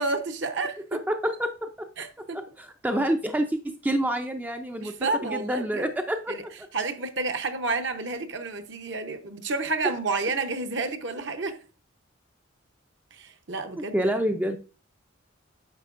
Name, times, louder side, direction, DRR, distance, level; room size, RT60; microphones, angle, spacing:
voice 1, 0.0-0.8 2.0-2.4 4.8-5.9 6.3-6.4 6.7-11.6 13.1-14.1, right 3 dB, 60° right, 0.8 m, -30 dB
voice 2, 0.9-1.9 2.3-4.9 5.2-6.5 13.7-14.6, right 1 dB, 10° right, 0.4 m, -28 dB
9.8 x 6.8 x 2.5 m
head